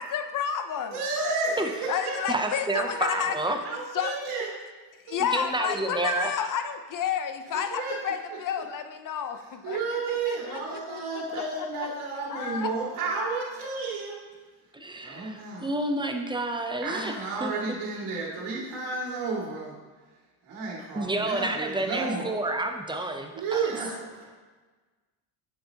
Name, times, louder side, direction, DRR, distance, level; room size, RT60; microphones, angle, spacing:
voice 1, 0.0-1.0 1.9-3.6 3.9-4.1 5.1-9.8 10.1-11.4 12.3-12.7, left 8 dB, 40° left, 8 dB, 0.7 m, -31 dB
voice 2, 0.9-2.3 2.7-3.3 3.6-4.5 5.1-5.2 5.6-5.7 7.5-8.4 9.4-14.2 15.0-15.7 16.8-19.7 20.4-22.3 23.3-24.2, right 3 dB, 75° right, -4 dB, 2.3 m, -32 dB
voice 3, 2.3-3.6 5.3-6.3 14.7-17.1 17.4-17.8 20.9-23.7, right 2 dB, 10° right, 5 dB, 0.5 m, -29 dB
8.9 x 7.1 x 2.8 m, 1.3 s
cardioid pair, 125°, 49 cm